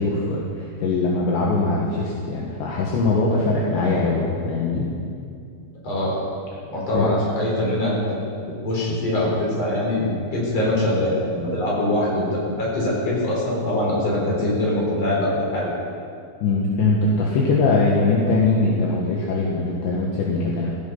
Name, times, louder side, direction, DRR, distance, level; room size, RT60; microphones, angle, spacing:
voice 1, 0.0-4.9 6.9-7.1 16.4-20.7, left 3 dB, 70° left, -4 dB, 3.6 m, -21 dB
voice 2, 5.8-6.2 6.7-15.8, left 1 dB, 35° left, -4 dB, 5.2 m, -23 dB
16.5 x 16.0 x 5.5 m, 2.4 s
omnidirectional pair, 5.5 m